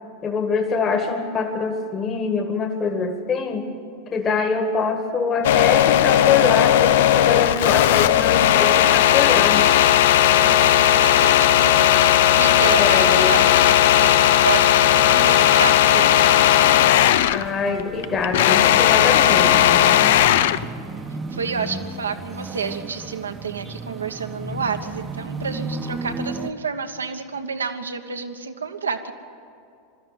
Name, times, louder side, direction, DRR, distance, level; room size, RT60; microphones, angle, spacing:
voice 1, 0.2-3.7 4.1-9.7 12.8-13.4 17.3-19.9, left 5 dB, 30° left, 5 dB, 1.9 m, -24 dB
sound 1, 5.4-17.5 17.8-20.7, left 11 dB, 60° left, 0.6 m, -16 dB
sound 2, 8.3-26.5, right 3 dB, 15° right, 1.0 m, -37 dB
voice 2, 10.4-16.2 21.3-29.1, right 5 dB, 75° right, 6 dB, 1.3 m, -29 dB
21.5 x 13.5 x 9.5 m, 2.5 s
figure-of-eight pair, 85°, 0 cm